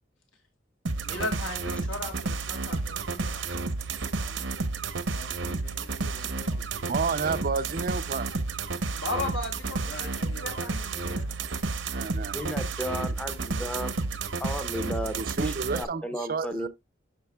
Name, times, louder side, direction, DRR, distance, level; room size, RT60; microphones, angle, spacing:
sound 1, 0.9-15.9, right 3 dB, 75° right, 0.8 m, -31 dB
voice 1, 1.0-3.6 3.9-4.1 9.0-11.3, left 2 dB, 85° left, 3.2 m, -36 dB
voice 2, 3.3-3.7 4.2-4.8 5.1-7.0 9.8-10.8, left 2 dB, 55° left, 1.0 m, -48 dB
voice 3, 6.9-8.3 11.9-12.4 15.2-16.7, right 5 dB, 45° right, 0.5 m, -30 dB
voice 4, 12.3-13.9 14.4-16.7, equal, 5° left, 0.6 m, -34 dB
12.0 x 5.1 x 2.3 m
head